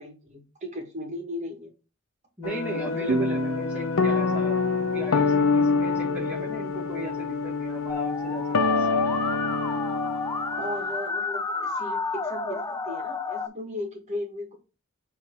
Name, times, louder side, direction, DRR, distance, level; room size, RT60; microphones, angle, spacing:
voice 1, 0.0-1.7 2.4-3.3 10.6-14.6, left 1 dB, 35° right, 3 dB, 1.5 m, -36 dB
sound 1, 2.4-10.8, left 4 dB, 85° left, 0.8 m, -26 dB
voice 2, 2.4-8.9, right 1 dB, 5° right, -3 dB, 1.4 m, -37 dB
sound 2, 3.1-6.5, right 1 dB, 85° right, 1.4 m, -32 dB
Musical instrument, 7.9-13.5, left 3 dB, 15° left, 0.5 m, -31 dB
7.5 x 3.2 x 4.3 m, 0.31 s
head